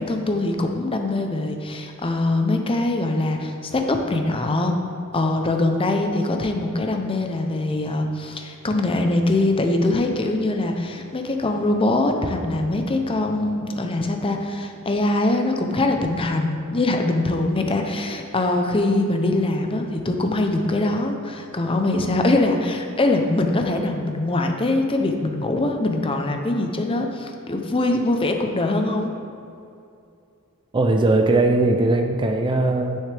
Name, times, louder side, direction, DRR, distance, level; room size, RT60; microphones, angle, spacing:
voice 1, 0.0-4.7 5.1-29.1, left 2 dB, 25° left, 4 dB, 0.6 m, -23 dB
voice 2, 30.7-33.0, right 2 dB, 20° right, 4 dB, 0.4 m, -19 dB
9.8 x 6.4 x 3.4 m, 2.6 s
head